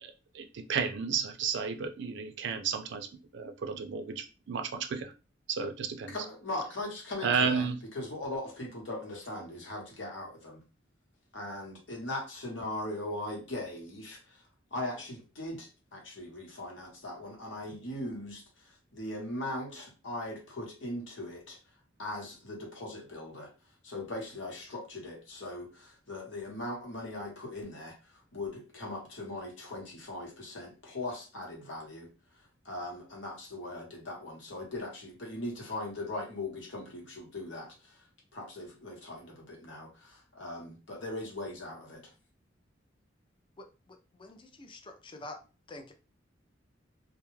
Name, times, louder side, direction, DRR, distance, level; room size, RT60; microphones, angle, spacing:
voice 1, 0.0-3.1 3.3-5.1 5.5-6.2 7.2-7.8, right 6 dB, 65° right, 7 dB, 0.4 m, -32 dB
voice 2, 6.1-7.7 7.9-10.6 11.3-14.4 14.7-21.6 22.0-23.5 23.8-32.1 32.3-38.0 38.3-42.1, left 1 dB, 70° left, -1 dB, 1.0 m, -39 dB
voice 3, 44.2-45.4 45.7-45.9, left 2 dB, 25° left, 5 dB, 0.4 m, -46 dB
2.3 x 2.1 x 3.0 m, 0.31 s
head